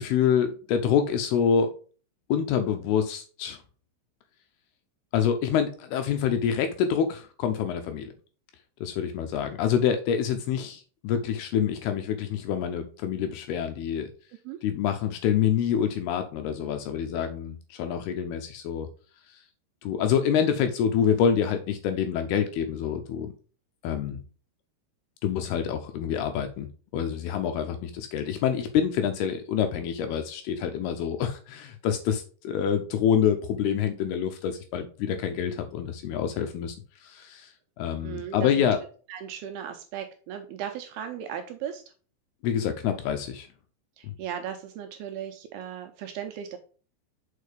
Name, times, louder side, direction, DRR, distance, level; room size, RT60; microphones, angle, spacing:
voice 1, 0.0-1.7 2.3-3.6 5.1-8.1 8.8-14.1 14.6-18.9 19.3-19.4 19.8-23.3 23.8-24.2 25.2-36.8 37.0-37.5 37.8-38.8 42.4-43.5 44.0-44.1, left 8 dB, 80° left, 7 dB, 2.4 m, -26 dB
voice 2, 38.0-38.7 39.1-41.8 44.0-46.6, right 9 dB, 80° right, 5 dB, 2.4 m, -37 dB
6.5 x 4.7 x 5.0 m, 0.39 s
omnidirectional pair, 5.1 m